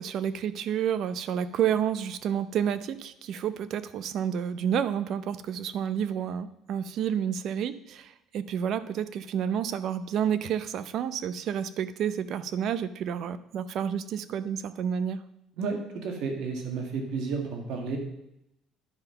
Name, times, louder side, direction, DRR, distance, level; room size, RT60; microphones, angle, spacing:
voice 1, 0.0-15.2, right 8 dB, 55° right, 14 dB, 0.6 m, -30 dB
voice 2, 15.6-18.0, right 4 dB, 75° right, 3 dB, 1.7 m, -32 dB
10.5 x 5.4 x 5.7 m, 0.84 s
cardioid pair, 130°, 0 cm